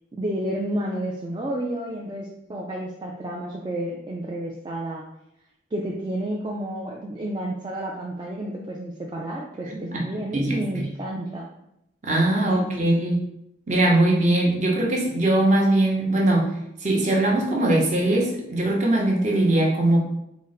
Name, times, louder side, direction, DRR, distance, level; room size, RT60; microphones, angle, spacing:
voice 1, 0.1-5.1 5.7-11.5 12.6-12.8, right 1 dB, 25° right, -2 dB, 0.3 m, -31 dB
voice 2, 9.7-10.0 10.3-10.9 12.0-13.2 13.7-16.5 16.8-20.0, right 1 dB, 40° right, -2 dB, 0.8 m, -21 dB
3.8 x 2.1 x 3.9 m, 0.81 s
head